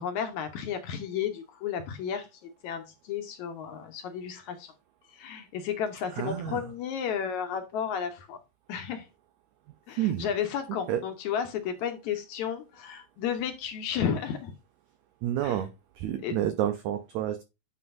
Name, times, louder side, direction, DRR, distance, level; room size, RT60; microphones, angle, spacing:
voice 1, 0.0-4.7 5.1-8.4 8.7-9.1 9.9-14.5 15.4-15.6 16.2-16.4, left 8 dB, 70° left, 1.9 m, -33 dB
voice 2, 6.2-6.6 10.0-10.3 10.9-11.0 15.2-17.4, right 11 dB, 90° right, 1.6 m, -29 dB
9.6 x 5.4 x 2.6 m
omnidirectional pair, 4.1 m